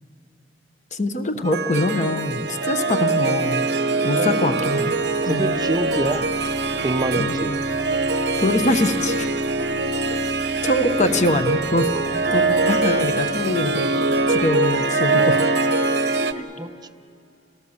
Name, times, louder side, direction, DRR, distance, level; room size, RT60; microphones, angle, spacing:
voice 1, 0.9-3.6 4.0-4.9 5.2-5.5 7.2-7.5 8.4-9.3 10.6-11.9 12.3-13.9 14.3-15.4 16.4-16.5, left 1 dB, 45° left, 8 dB, 1.1 m, -23 dB
Harp, 1.4-16.3, right 3 dB, 65° right, 1.0 m, -23 dB
voice 2, 4.2-4.6 5.2-6.3 6.8-7.6 16.6-16.9, right 2 dB, 25° right, 8 dB, 0.7 m, -26 dB
sound 1, 4.5-14.5, equal, 25° left, 5.5 m, -42 dB
29.5 x 18.5 x 7.2 m, 2.4 s
head